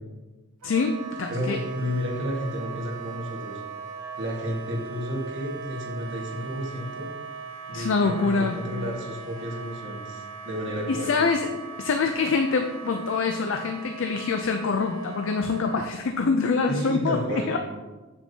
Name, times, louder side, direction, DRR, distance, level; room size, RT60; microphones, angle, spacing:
voice 1, 0.6-1.6 7.7-8.6 10.9-11.5 11.8-17.2 17.5-17.6, left 4 dB, 60° left, 5 dB, 0.4 m, -25 dB
Wind instrument woodwind instrument, 0.6-15.9, right 4 dB, 90° right, 0.7 m, -39 dB
voice 2, 1.3-3.6 4.2-7.1 7.7-11.1 16.7-17.5, equal, 55° right, -2 dB, 1.5 m, -31 dB
7.3 x 7.0 x 2.8 m, 1.2 s
head